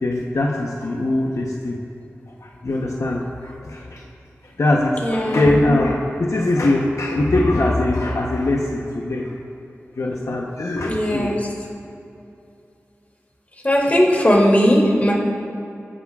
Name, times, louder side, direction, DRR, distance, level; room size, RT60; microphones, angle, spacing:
voice 1, 0.0-1.8 2.4-4.0 4.4-9.3 10.0-11.4, left 2 dB, 75° left, -1 dB, 0.9 m, -21 dB
voice 2, 5.0-5.5 10.8-11.5 13.6-15.1, equal, 30° left, -3 dB, 2.6 m, -17 dB
21.5 x 10.0 x 2.4 m, 2.7 s
wide cardioid pair, 80°, 5 cm